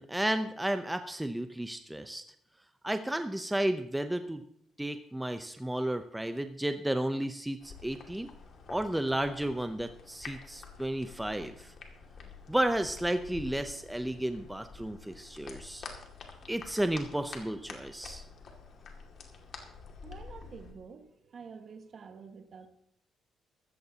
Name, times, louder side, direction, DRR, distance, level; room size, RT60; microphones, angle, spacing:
voice 1, 0.0-2.2 2.8-4.4 4.8-8.3 8.7-11.7 12.5-15.9 16.5-18.2, right 1 dB, 5° right, 8 dB, 0.7 m, -32 dB
sound 1, 7.6-20.7, left 5 dB, 55° left, 2.2 m, -49 dB
voice 2, 20.0-22.7, right 5 dB, 50° right, 6 dB, 1.5 m, -48 dB
14.0 x 14.0 x 2.9 m, 0.68 s
cardioid pair, 90°, 0 cm